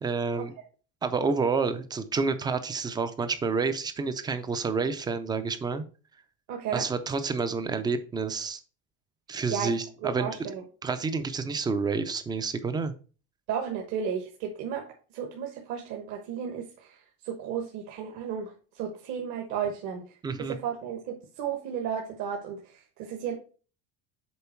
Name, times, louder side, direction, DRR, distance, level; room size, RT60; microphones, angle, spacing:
voice 1, 0.0-0.5 1.0-5.8 6.7-8.6 9.3-10.3 10.8-12.9 20.2-20.6, right 4 dB, 15° right, 11 dB, 0.3 m, -29 dB
voice 2, 6.5-6.9 9.5-9.7 10.0-10.6 13.5-14.9 15.1-17.0 17.2-20.1 20.4-23.3, right 7 dB, 60° right, 1 dB, 1.2 m, -33 dB
7.0 x 4.4 x 4.3 m, 0.37 s
cardioid pair, 175°, 33 cm